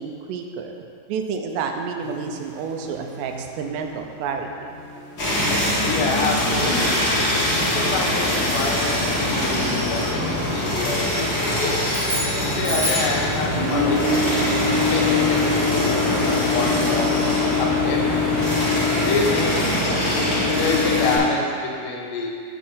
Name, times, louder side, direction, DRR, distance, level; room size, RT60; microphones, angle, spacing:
voice 1, 0.0-4.5, right 5 dB, 85° right, 4 dB, 2.8 m, -30 dB
sound 1, 2.0-18.1, right 2 dB, 70° right, 2.8 m, -42 dB
sound 2, 5.2-21.2, left 2 dB, 40° left, 1.8 m, -22 dB
voice 2, 5.8-7.0 7.5-11.9 12.5-14.2 14.9-17.2 17.6-18.0 19.0-19.6 20.5-22.3, left 3 dB, 85° left, 0 dB, 3.2 m, -27 dB
sound 3, 11.9-13.2, equal, 45° right, 2.8 m, -28 dB
10.5 x 4.3 x 5.5 m, 2.3 s
omnidirectional pair, 4.8 m